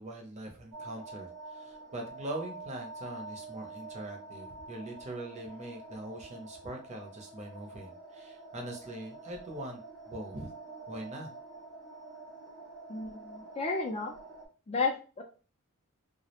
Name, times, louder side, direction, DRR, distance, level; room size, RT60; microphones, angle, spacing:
voice 1, 0.0-9.8 10.1-10.5 10.9-11.3, right 1 dB, 30° right, 2 dB, 0.6 m, -42 dB
sound 1, 0.7-14.5, right 3 dB, 70° right, 0.8 m, -47 dB
voice 2, 12.9-14.1 14.7-15.2, left 3 dB, 25° left, 3 dB, 0.3 m, -32 dB
2.3 x 2.0 x 2.8 m, 0.36 s
head